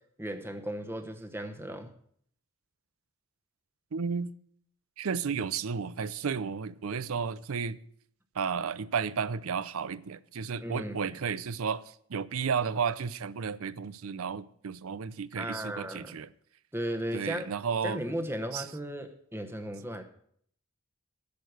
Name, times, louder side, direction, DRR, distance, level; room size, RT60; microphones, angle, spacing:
voice 1, 0.2-1.9 10.6-11.1 15.4-16.2 16.7-17.5 17.8-20.0, equal, 10° right, 7 dB, 0.9 m, -36 dB
voice 2, 3.9-4.3 5.0-7.8 8.4-11.8 12.1-16.3 17.1-18.0 18.5-18.6, right 6 dB, 80° right, 17 dB, 0.5 m, -32 dB
10.5 x 6.4 x 7.8 m, 0.64 s
head